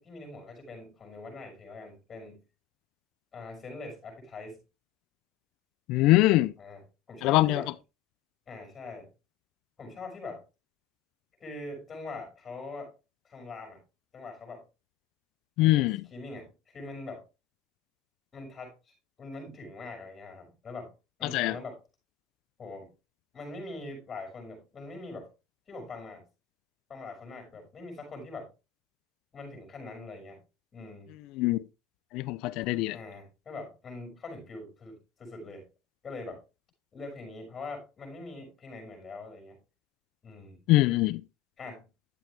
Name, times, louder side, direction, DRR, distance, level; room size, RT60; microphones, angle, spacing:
voice 1, 0.0-2.4 3.3-4.6 6.6-7.7 8.5-9.1 9.8-10.4 11.4-12.9 13.2-13.8 14.1-14.6 15.6-17.2 18.3-20.9 21.2-21.8 22.6-22.9 23.3-25.3 25.7-26.2 26.9-28.5 29.3-30.4 30.7-31.1 32.9-35.6 36.0-36.4 36.9-39.6 40.2-40.6 41.6-41.9, left 3 dB, 25° left, 6.0 m, -43 dB
voice 2, 5.9-6.5 7.2-7.6 15.6-16.0 21.3-21.6 31.4-31.6 32.1-33.0 40.7-41.2, left 17 dB, 60° left, 0.5 m, -23 dB
11.5 x 7.8 x 3.4 m
supercardioid pair, 130°, 0 cm